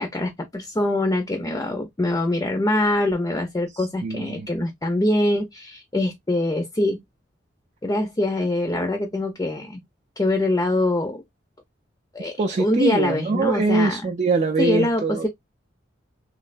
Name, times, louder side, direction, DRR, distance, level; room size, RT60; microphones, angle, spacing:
voice 1, 0.0-7.0 7.8-9.8 10.2-11.2 12.1-12.3 12.6-14.1 14.6-15.3, left 1 dB, 20° left, 0.5 m, -24 dB
voice 2, 3.7-4.5 12.4-15.3, right 3 dB, 40° right, 0.4 m, -23 dB
3.1 x 2.7 x 2.4 m
head